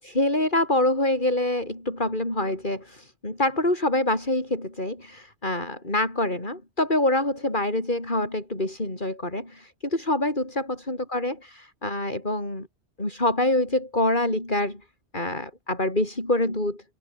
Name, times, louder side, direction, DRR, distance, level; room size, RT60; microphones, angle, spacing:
voice 1, 0.0-12.7 13.0-14.8 15.1-16.8, left 1 dB, 45° left, 6.6 m, -26 dB
omnidirectional pair, 1.2 m